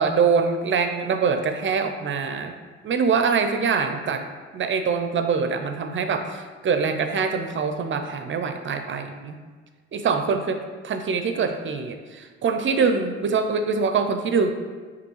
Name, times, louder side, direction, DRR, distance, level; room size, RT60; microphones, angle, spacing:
voice 1, 0.0-2.5 2.8-4.2 4.5-9.4 9.9-10.6 10.8-14.5, right 5 dB, 35° right, 7 dB, 0.5 m, -24 dB
5.1 x 2.7 x 3.1 m, 1.5 s
hypercardioid pair, 55°, 34 cm